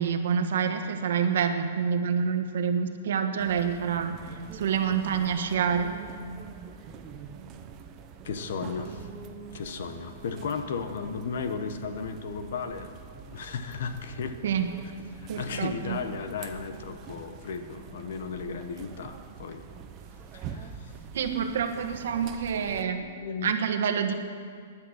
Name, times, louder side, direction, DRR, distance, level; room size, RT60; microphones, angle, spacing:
voice 1, 0.0-4.2 4.5-5.9 14.4-14.7 15.3-16.0 21.1-23.1 23.4-24.1, right 7 dB, 60° right, 7 dB, 1.4 m, -27 dB
sound 1, 3.4-22.9, right 7 dB, 20° right, 0.7 m, -45 dB
voice 2, 8.2-9.1 9.5-12.9 13.3-14.4 15.1-19.6 20.3-20.9 23.2-23.6, left 5 dB, 55° left, 8 dB, 1.1 m, -35 dB
16.0 x 10.5 x 6.5 m, 2.2 s
hypercardioid pair, 170°, 0 cm